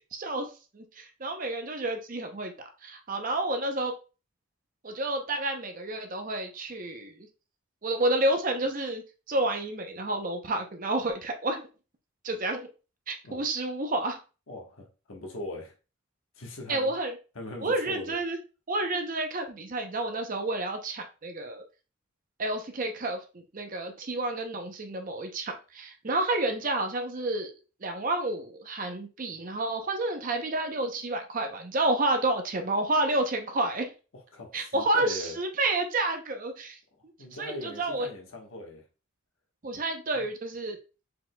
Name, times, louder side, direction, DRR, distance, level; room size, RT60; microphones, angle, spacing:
voice 1, 0.0-3.9 4.8-7.3 7.8-9.0 9.3-11.7 12.2-12.7 13.1-14.2 16.7-17.2 17.6-18.4 18.7-21.6 22.4-23.2 23.5-27.5 27.8-33.9 34.5-36.8 37.4-38.1 39.6-40.8, right 2 dB, 40° right, 5 dB, 0.6 m, -30 dB
voice 2, 14.5-15.7 16.3-16.9 17.3-18.2 34.1-35.4 37.2-38.8 40.1-40.3, left 1 dB, 70° left, 0 dB, 1.3 m, -40 dB
4.9 x 4.0 x 2.2 m, 0.33 s
head